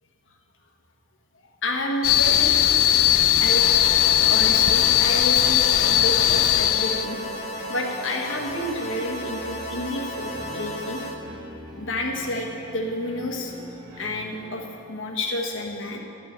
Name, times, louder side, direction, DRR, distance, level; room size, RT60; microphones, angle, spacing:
voice 1, 1.6-2.6 3.4-3.9 4.2-7.2 7.7-11.0 11.8-13.5 14.0-16.0, left 1 dB, 65° left, 1 dB, 1.3 m, -30 dB
sound 1, 2.0-7.1, left 12 dB, 90° left, 0.4 m, -19 dB
sound 2, 2.2-14.5, equal, 40° right, 2.1 m, -42 dB
sound 3, 3.4-11.2, equal, 35° left, 0.8 m, -34 dB
12.0 x 5.5 x 8.7 m, 2.8 s
head